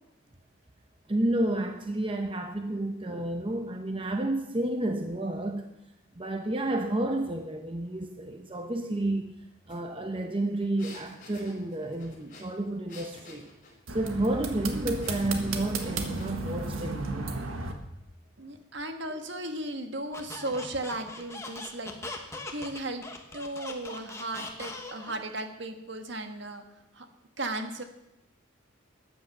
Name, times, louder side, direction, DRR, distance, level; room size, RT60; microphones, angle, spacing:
voice 1, 1.1-5.7 6.2-9.3 9.7-13.5 13.9-17.5, right 1 dB, 25° right, 5 dB, 0.8 m, -31 dB
sound 1, 9.7-9.8 10.1-13.8 15.0-16.5, left 3 dB, 40° left, 4.6 m, -50 dB
sound 2, 13.9-17.7, right 3 dB, 85° right, 1.6 m, -34 dB
voice 2, 18.4-23.0 23.3-26.6 26.9-27.0 27.4-27.8, right 1 dB, 60° right, 6 dB, 1.5 m, -36 dB
Squeak, 20.1-25.2, left 2 dB, 15° left, 1.3 m, -40 dB
13.0 x 9.2 x 7.1 m, 0.91 s
head